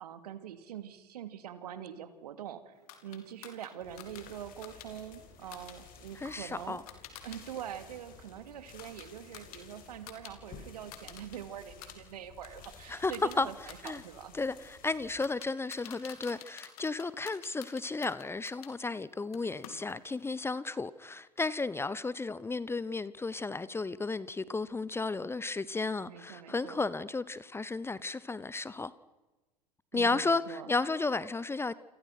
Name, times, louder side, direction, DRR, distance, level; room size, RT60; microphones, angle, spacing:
voice 1, 0.0-2.7 3.0-6.8 7.2-14.4 26.1-26.9 29.9-30.7, right 10 dB, 65° right, 2.7 m, -44 dB
sound 1, 2.9-7.4 7.7-10.3 10.6-11.4 11.7-18.7 19.3-20.2, left 10 dB, 60° left, 4.1 m, -51 dB
sound 2, 3.8-15.2, left 5 dB, 40° left, 6.4 m, -54 dB
voice 2, 6.2-6.8 12.9-13.1 13.4-13.5 13.8-14.0 14.3-28.9 29.9-31.7, left 3 dB, 10° left, 0.9 m, -33 dB
29.5 x 27.0 x 6.1 m
figure-of-eight pair, 80°, 21 cm